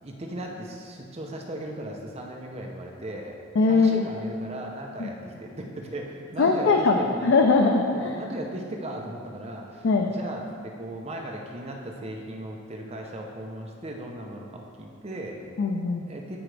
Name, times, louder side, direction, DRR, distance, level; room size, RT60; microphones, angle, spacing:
voice 1, 0.0-3.4 3.7-7.3 7.9-15.4 16.1-16.4, right 1 dB, 35° right, 0 dB, 0.7 m, -37 dB
voice 2, 3.6-4.0 5.0-5.1 6.4-8.1 9.8-10.1 15.6-16.1, left 4 dB, 85° left, 2 dB, 0.5 m, -21 dB
14.0 x 4.9 x 3.4 m, 2.4 s
head